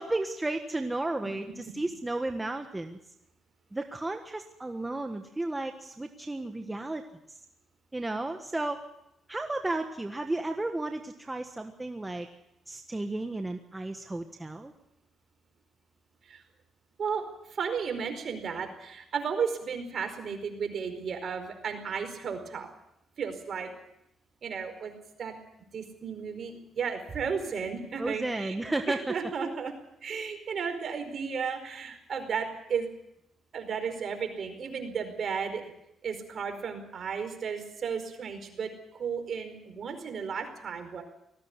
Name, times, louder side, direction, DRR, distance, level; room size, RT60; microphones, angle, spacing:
voice 1, 0.0-3.0 3.7-7.0 7.9-8.8 9.3-12.3 12.7-14.7 28.0-29.1, right 2 dB, 15° right, 5 dB, 1.5 m, -33 dB
voice 2, 17.5-22.7 23.2-23.7 24.4-24.9 25.2-25.4 25.7-29.7 30.0-32.9 33.5-35.6 36.0-38.7 39.0-41.0, right 6 dB, 55° right, 6 dB, 4.8 m, -34 dB
19.5 x 15.0 x 9.7 m, 0.83 s
cardioid pair, 90°, 0 cm